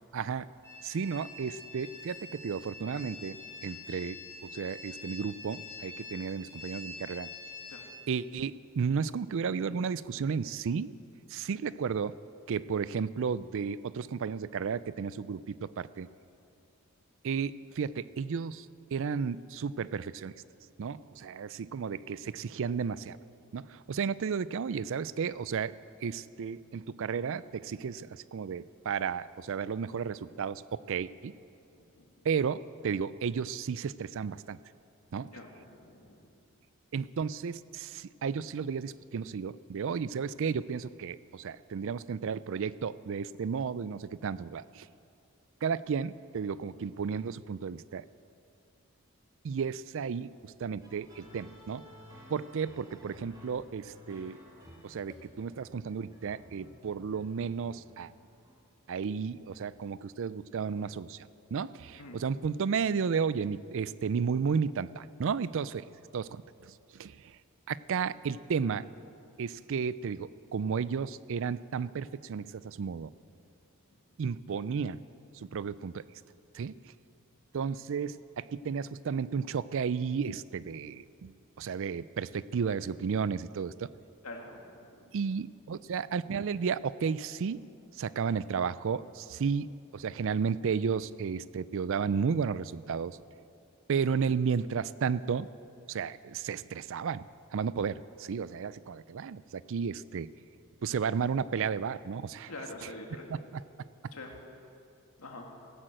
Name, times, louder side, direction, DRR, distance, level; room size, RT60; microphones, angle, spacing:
voice 1, 0.1-0.5 0.8-4.2 4.5-7.3 8.1-10.9 11.3-12.2 12.5-16.1 17.2-18.7 18.9-20.3 20.8-23.2 23.5-25.7 26.0-31.3 32.2-34.6 35.1-35.3 36.9-44.9 45.6-48.0 49.4-51.8 52.3-54.4 54.8-58.1 58.9-65.9 66.1-66.4 66.7-67.4 67.7-68.9 69.4-73.1 74.2-75.0 75.3-76.0 76.5-76.7 77.5-83.9 85.1-87.6 88.0-93.2 93.9-95.5 95.9-97.3 97.5-100.3 100.8-102.5 103.3-103.6 104.0-104.1, right 6 dB, 65° right, 17 dB, 0.4 m, -33 dB
sound 1, 0.6-7.9, left 3 dB, 15° left, 3.9 m, -46 dB
voice 2, 31.8-32.1 35.2-36.2 62.0-62.2 84.2-84.6 84.9-85.0 102.5-103.3 104.1-104.4 105.2-105.5, left 2 dB, 85° left, 1 dB, 2.2 m, -45 dB
sound 2, 50.8-58.6, equal, 20° right, 2.5 m, -54 dB
15.5 x 11.0 x 7.7 m, 2.6 s
head